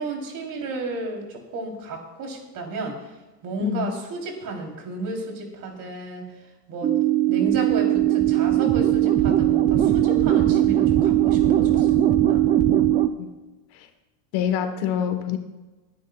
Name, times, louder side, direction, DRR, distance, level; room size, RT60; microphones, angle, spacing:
voice 1, 0.0-3.0 3.4-6.3 6.7-6.9 7.3-11.9 12.2-12.5, right 2 dB, 45° right, 1 dB, 3.4 m, -32 dB
voice 2, 3.6-3.9 13.2-13.3 13.7-13.9 14.3-15.4, left 9 dB, 55° left, 8 dB, 1.3 m, -26 dB
sound 1, 6.8-13.1, right 12 dB, 20° right, 0.3 m, -19 dB
22.0 x 10.5 x 2.3 m, 1.2 s
supercardioid pair, 130°, 46 cm